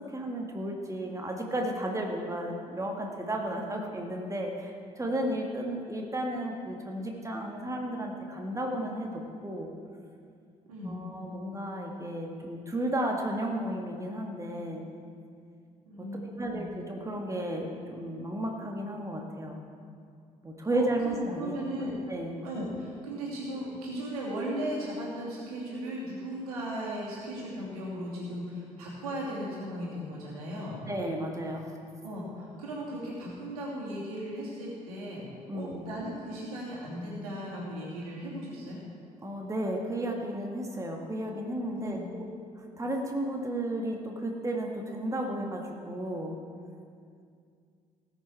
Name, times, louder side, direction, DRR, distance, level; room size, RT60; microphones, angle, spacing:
voice 1, 0.1-9.1 9.4-9.7 10.8-14.9 16.4-19.6 20.4-21.5 22.1-22.4 30.9-31.7 35.5-35.8 39.2-42.2 42.6-46.4, right 1 dB, 15° right, 1 dB, 1.8 m, -33 dB
voice 2, 15.8-16.7 20.7-22.0 22.4-30.8 32.0-35.2 35.5-38.8 41.7-42.1, right 1 dB, 75° right, -5 dB, 2.7 m, -37 dB
18.5 x 7.1 x 4.7 m, 2.3 s
figure-of-eight pair, 45°, 19 cm